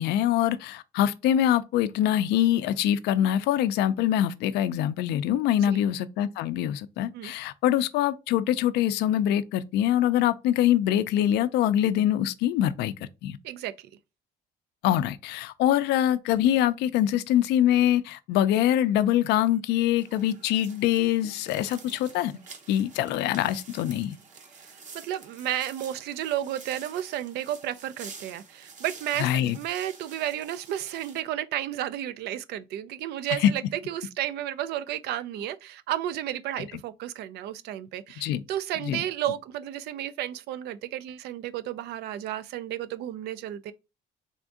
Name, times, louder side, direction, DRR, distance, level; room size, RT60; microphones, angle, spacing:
voice 1, 0.0-12.9 13.2-13.4 14.8-22.3 22.7-24.2 29.2-29.6 33.4-33.5 38.2-38.4 38.8-39.0, left 11 dB, 85° left, 0.4 m, -24 dB
voice 2, 13.4-13.9 24.5-43.7, right 12 dB, 75° right, 0.4 m, -32 dB
sound 1, 20.0-31.2, right 4 dB, 45° right, 0.9 m, -48 dB
3.5 x 2.6 x 3.5 m
cardioid pair, 110°, 17 cm